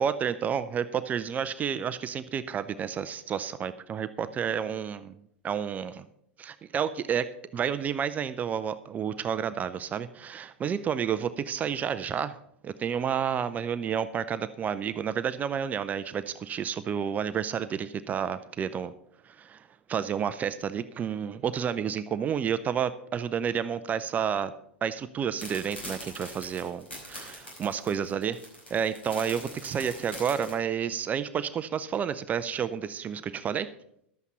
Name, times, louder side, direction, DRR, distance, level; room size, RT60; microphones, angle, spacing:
voice 1, 0.0-5.2 5.4-6.0 6.4-7.3 7.5-12.4 12.6-18.9 19.2-24.5 24.8-28.4 28.7-33.7, right 8 dB, 25° right, 13 dB, 0.5 m, -30 dB
sound 1, 25.4-30.5, left 1 dB, 85° left, 5.2 m, -42 dB
11.5 x 8.2 x 5.5 m, 0.72 s
figure-of-eight pair, 90°, 6 cm